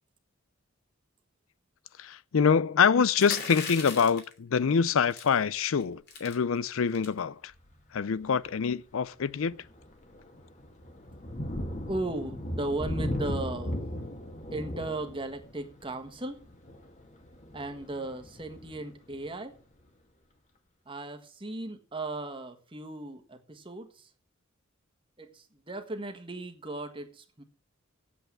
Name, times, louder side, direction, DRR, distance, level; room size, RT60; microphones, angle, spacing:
voice 1, 2.0-7.5 7.9-9.6, left 6 dB, 75° left, 0.5 m, -25 dB
sound 1, 3.1-4.3 5.1-5.4 5.8-5.9 6.1-6.3 6.9-7.2, left 5 dB, 50° left, 2.8 m, -38 dB
Thunder, 7.5-7.8 8.4-8.6 9.0-19.6, equal, 35° left, 1.9 m, -38 dB
voice 2, 11.9-13.8 14.5-16.4 17.5-19.6 20.8-24.1 25.2-27.4, right 2 dB, 25° right, 1.5 m, -36 dB
8.3 x 8.0 x 8.8 m
head